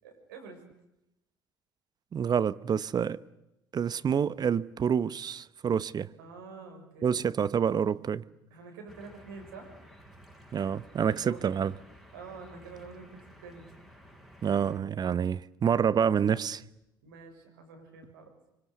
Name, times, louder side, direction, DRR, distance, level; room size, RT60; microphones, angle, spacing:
voice 1, 0.0-0.6 6.2-7.2 8.5-9.7 11.2-11.4 12.1-13.6 15.6-16.2 17.0-18.3, right 4 dB, 80° right, 6.7 m, -47 dB
voice 2, 2.1-3.2 3.7-6.1 7.0-8.2 10.5-11.7 14.4-16.6, right 7 dB, 35° right, 1.0 m, -27 dB
sound 1, 8.9-14.8, equal, 5° right, 7.7 m, -54 dB
25.5 x 25.0 x 8.3 m
hypercardioid pair, 60°, 11 cm